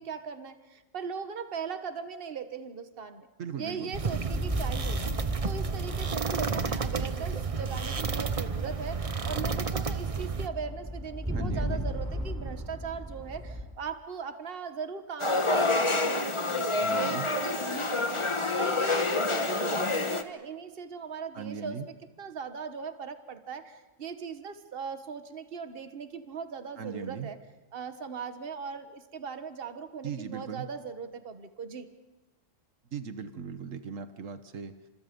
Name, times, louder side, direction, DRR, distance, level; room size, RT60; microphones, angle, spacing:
voice 1, 0.0-3.3 3.6-27.4 27.7-31.9, right 6 dB, 45° right, 9 dB, 1.5 m, -39 dB
voice 2, 3.4-4.0 11.3-11.8 16.8-17.3 21.3-21.9 26.8-27.3 30.0-30.7 32.9-34.7, right 6 dB, 75° right, 10 dB, 1.5 m, -38 dB
sound 1, 3.9-10.5, right 5 dB, 30° right, 0.9 m, -31 dB
sound 2, 4.3-13.6, equal, 10° right, 5.4 m, -36 dB
sound 3, 15.2-20.2, left 3 dB, 25° left, 1.2 m, -27 dB
30.0 x 26.5 x 5.3 m, 1.1 s
omnidirectional pair, 1.3 m